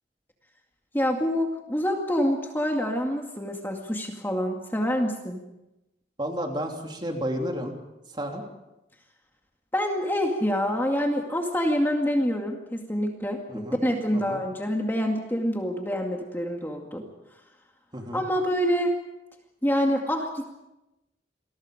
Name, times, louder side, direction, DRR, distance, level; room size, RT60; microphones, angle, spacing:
voice 1, 0.9-5.4 9.7-17.1 18.1-19.0 19.6-20.4, equal, 10° left, 1 dB, 2.2 m, -26 dB
voice 2, 6.2-7.7 8.1-8.4 13.5-13.8 14.3-14.4 17.9-18.2, equal, 25° right, 2 dB, 3.4 m, -31 dB
28.5 x 21.5 x 5.2 m, 0.94 s
head